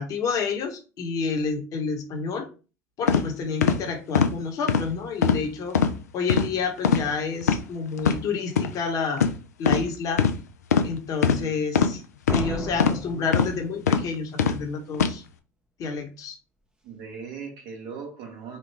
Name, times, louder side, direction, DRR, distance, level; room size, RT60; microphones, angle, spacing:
voice 1, 0.0-2.5 3.0-5.8 6.1-9.3 9.6-10.2 10.8-12.0 12.3-15.2 15.8-16.4, left 5 dB, 45° left, 3 dB, 1.0 m, -29 dB
sound 1, 3.1-3.2 3.6-3.8 4.1-4.3 4.7-4.8 5.2-5.4 5.7-5.9 6.3-6.5 6.8-7.0 7.4-7.6 8.0-8.2 8.5-8.7 9.2-9.3 9.6-9.8 10.2-10.3 10.7-10.9 11.2-11.4 11.7-11.9 12.3-12.4 12.8-13.0 13.3-13.5 13.9-14.0 14.4-14.6 14.9-15.1, left 7 dB, 80° left, 0.4 m, -21 dB
Slam, 12.3-14.2, right 1 dB, 10° right, 0.6 m, -35 dB
voice 2, 16.8-18.6, right 6 dB, 55° right, 2 dB, 1.2 m, -39 dB
3.1 x 2.3 x 3.3 m, 0.34 s
hypercardioid pair, 80°, 8 cm